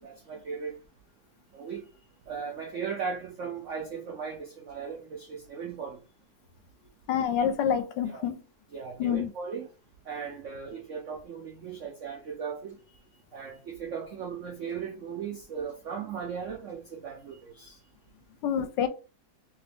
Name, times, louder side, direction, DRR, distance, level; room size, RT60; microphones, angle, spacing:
voice 1, 0.0-0.8 1.5-1.9 2.3-6.0 8.1-8.3 8.7-9.7 10.1-13.0 13.3-17.8, right 6 dB, 75° right, 0.7 m, -37 dB
voice 2, 7.1-8.4 9.0-9.3 18.4-18.9, left 8 dB, 75° left, 1.2 m, -27 dB
3.1 x 2.9 x 3.4 m
omnidirectional pair, 2.1 m